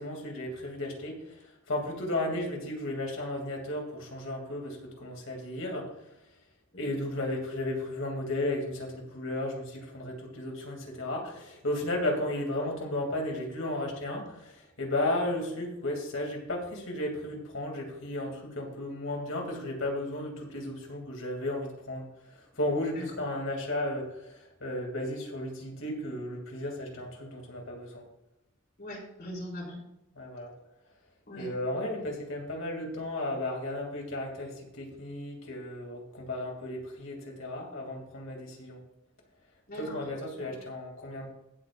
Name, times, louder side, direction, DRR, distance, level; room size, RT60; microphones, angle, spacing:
voice 1, 0.0-5.9 6.8-28.0 30.1-30.5 31.4-38.8 39.8-41.3, left 1 dB, 70° left, 1 dB, 3.0 m, -34 dB
voice 2, 28.8-29.8 31.3-31.5 39.7-40.0 40.4-40.5, equal, 50° left, -2 dB, 3.9 m, -41 dB
16.5 x 8.1 x 2.6 m, 0.89 s
head